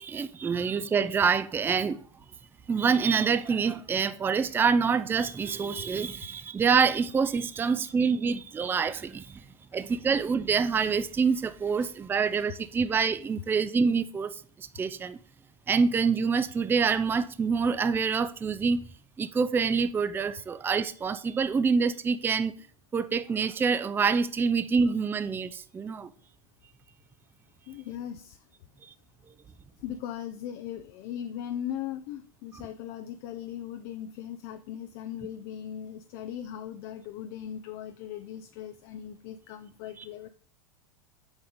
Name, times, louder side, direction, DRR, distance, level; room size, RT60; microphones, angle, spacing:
voice 1, 0.0-2.0 2.7-9.4 9.7-15.2 15.7-18.8 19.2-22.5 22.9-26.1, right 5 dB, 10° right, 0.4 m, -26 dB
voice 2, 27.7-28.4 29.8-40.3, left 10 dB, 50° left, 0.5 m, -39 dB
7.2 x 4.9 x 3.7 m
hypercardioid pair, 100°, 17 cm